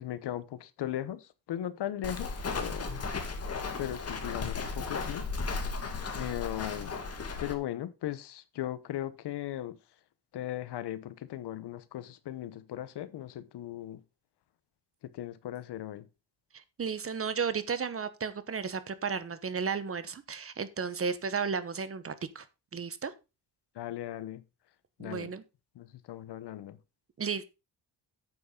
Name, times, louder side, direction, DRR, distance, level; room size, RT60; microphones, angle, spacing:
voice 1, 0.0-2.9 3.8-5.3 6.1-7.0 7.4-9.8 10.3-14.0 15.0-16.1 23.7-24.4 25.0-25.3 25.7-26.8, left 12 dB, 75° left, 1.1 m, -38 dB
Walk footsteps, 2.0-7.5, left 4 dB, 35° left, 1.9 m, -35 dB
voice 2, 16.5-22.5 22.7-23.1 25.0-25.4 27.2-27.5, right 6 dB, 35° right, 1.0 m, -34 dB
9.3 x 8.2 x 3.8 m
cardioid pair, 130°, 41 cm